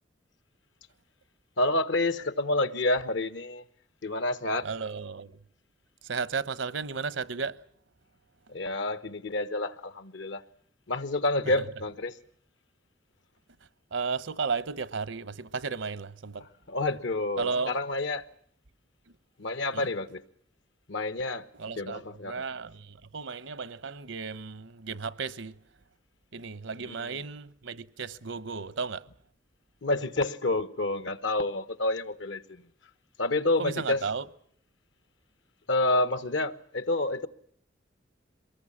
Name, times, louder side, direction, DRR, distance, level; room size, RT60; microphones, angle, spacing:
voice 1, 1.6-3.6 4.0-4.7 8.5-10.4 10.9-12.2 16.4-18.2 19.4-20.2 20.9-21.5 21.7-22.4 26.8-27.2 29.8-32.6 33.2-34.0 35.7-37.3, left 2 dB, 65° left, 1.2 m, -29 dB
voice 2, 4.6-5.3 6.0-7.6 13.9-16.5 17.4-17.8 19.7-19.9 21.6-25.6 26.3-29.0 33.6-34.2, right 5 dB, 75° right, 0.9 m, -34 dB
23.5 x 20.0 x 8.6 m
head